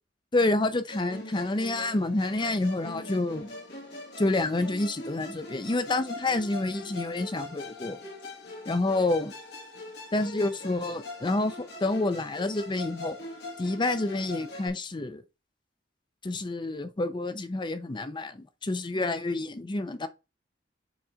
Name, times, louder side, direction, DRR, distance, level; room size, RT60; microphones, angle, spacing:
voice 1, 0.3-3.5 4.2-8.0 8.7-9.3 10.1-11.6 11.8-13.2 13.6-15.2 16.2-20.1, left 2 dB, 25° left, 0.5 m, -28 dB
Musical instrument, 0.9-14.7, left 2 dB, 65° left, 2.6 m, -42 dB
7.2 x 3.7 x 5.0 m
head